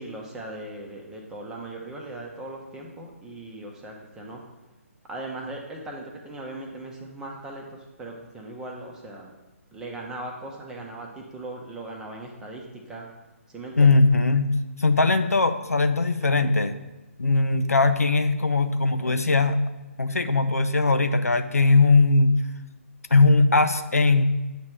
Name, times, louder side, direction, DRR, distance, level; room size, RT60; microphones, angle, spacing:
voice 1, 0.0-4.4 5.1-9.3 9.7-13.1 13.5-14.0 19.0-19.4, right 2 dB, 10° right, 0 dB, 0.8 m, -39 dB
voice 2, 13.8-14.5 14.8-16.7 17.2-19.6 20.0-22.4 23.1-24.2, left 3 dB, 80° left, 9 dB, 0.5 m, -20 dB
8.3 x 3.2 x 6.0 m, 1.1 s
figure-of-eight pair, 140°, 8 cm